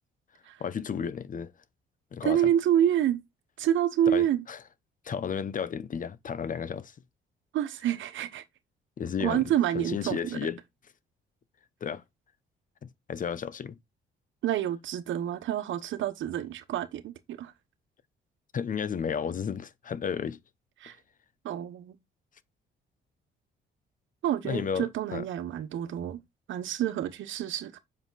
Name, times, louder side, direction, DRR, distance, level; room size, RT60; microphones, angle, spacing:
voice 1, 0.6-1.5 2.1-2.5 4.1-4.6 5.0-6.9 9.0-10.6 11.8-12.0 12.8-13.8 18.5-20.4 24.4-25.3, left 7 dB, 40° left, 0.8 m, -33 dB
voice 2, 2.2-3.2 3.6-4.4 7.5-8.4 9.2-10.4 14.4-17.5 20.8-21.0 21.4-21.9 24.2-26.2 26.5-27.8, right 11 dB, 75° right, 1.1 m, -28 dB
7.3 x 4.9 x 4.0 m
cardioid pair, 90°, 20 cm